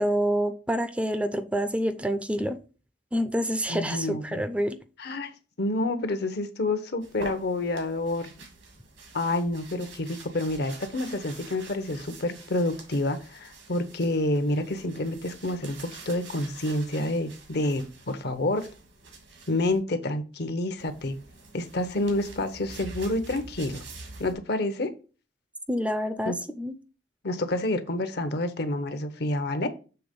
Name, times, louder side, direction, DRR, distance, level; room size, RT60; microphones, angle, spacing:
voice 1, 0.0-2.6 3.1-4.8 25.7-26.7, equal, 5° right, 10 dB, 0.5 m, -27 dB
voice 2, 3.7-4.4 5.0-5.3 5.6-8.3 9.1-15.8 16.1-18.7 19.5-21.2 21.5-23.8 24.2-24.9 26.2-26.3 27.2-29.7, left 1 dB, 60° left, 10 dB, 0.9 m, -28 dB
sound 1, 7.0-19.8 20.8-24.3, right 3 dB, 85° right, 2.2 m, -46 dB
6.9 x 3.4 x 5.2 m, 0.34 s
head